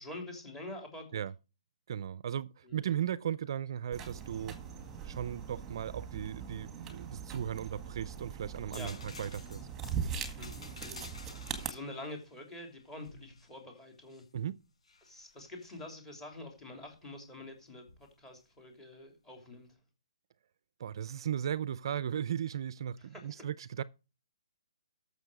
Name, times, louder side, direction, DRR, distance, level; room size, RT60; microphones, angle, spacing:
voice 1, 0.0-1.2 2.6-2.9 8.6-9.2 10.4-11.0 11.7-14.2 15.0-19.8 23.0-23.5, left 2 dB, 10° left, 3.1 m, -47 dB
voice 2, 1.9-4.6 5.0-9.7 14.3-14.6 20.8-23.8, right 9 dB, 50° right, 0.4 m, -36 dB
sound 1, 3.9-11.7, right 7 dB, 10° right, 1.8 m, -41 dB
sound 2, 8.7-14.3 14.8-15.8 17.9-18.1, left 4 dB, 75° left, 4.3 m, -52 dB
13.0 x 6.7 x 4.8 m
hypercardioid pair, 160°, 3 cm